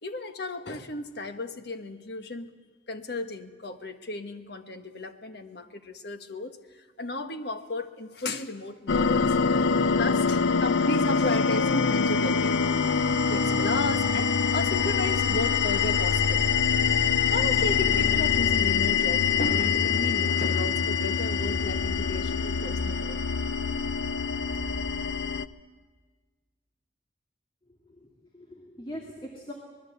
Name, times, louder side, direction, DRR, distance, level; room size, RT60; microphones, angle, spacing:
voice 1, 0.0-2.5 2.9-9.7 10.0-12.6 13.3-16.4 17.3-23.2, left 2 dB, 60° left, 7 dB, 1.4 m, -34 dB
sound 1, 8.9-25.5, left 5 dB, 80° left, 0.7 m, -24 dB
voice 2, 27.7-29.5, equal, 25° left, 0 dB, 2.4 m, -42 dB
24.5 x 20.5 x 8.1 m, 1.4 s
head